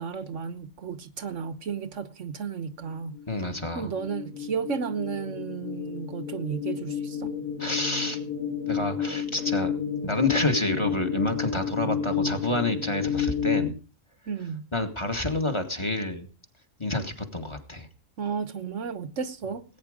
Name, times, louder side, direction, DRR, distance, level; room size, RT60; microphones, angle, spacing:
voice 1, 0.0-3.2 3.7-7.3 14.3-14.7 18.2-19.6, right 6 dB, 65° right, 1.3 m, -33 dB
sound 1, 3.1-13.7, left 7 dB, 40° left, 3.4 m, -31 dB
voice 2, 3.3-3.9 7.6-8.2 8.6-9.7 10.0-13.7 14.7-16.3 16.8-17.9, left 2 dB, 20° left, 1.8 m, -28 dB
19.0 x 9.6 x 5.0 m
omnidirectional pair, 1.4 m